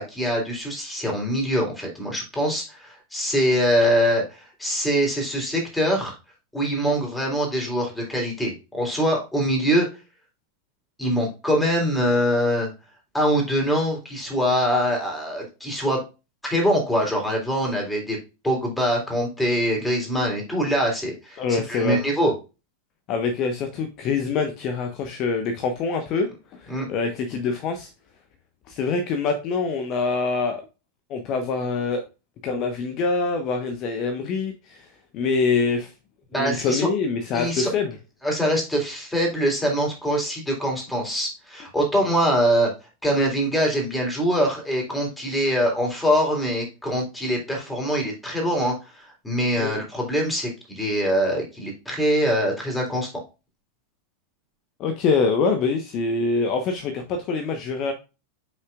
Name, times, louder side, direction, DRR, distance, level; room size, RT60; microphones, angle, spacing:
voice 1, 0.0-6.2 6.5-9.9 11.0-12.7 13.1-16.0 16.4-18.2 18.4-22.3 26.7-26.9 36.3-36.9 37.3-37.7 38.2-42.7 43.0-53.1, equal, 5° left, 0 dB, 3.6 m, -23 dB
voice 2, 21.4-22.0 23.1-27.9 28.7-30.7 31.1-32.0 32.4-34.9 35.1-35.9 36.4-38.0 49.6-49.7 54.8-57.9, left 4 dB, 35° left, 6 dB, 1.1 m, -25 dB
8.0 x 5.8 x 2.4 m, 0.28 s
figure-of-eight pair, 90°, 0 cm